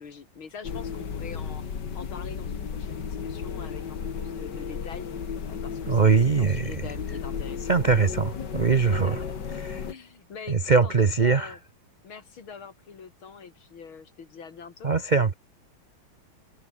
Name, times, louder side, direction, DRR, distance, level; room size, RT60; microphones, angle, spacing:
voice 1, 0.0-1.6 1.9-5.1 5.4-8.3 8.9-9.4 9.9-11.6 12.0-14.9, left 6 dB, 80° left, 3.5 m, -44 dB
sound 1, 0.6-9.9, left 6 dB, 55° left, 2.5 m, -34 dB
voice 2, 5.9-6.8 7.7-8.3 8.5-9.2 9.7-9.8 10.5-11.5 14.8-15.3, right 5 dB, 90° right, 0.4 m, -21 dB
omnidirectional pair, 2.2 m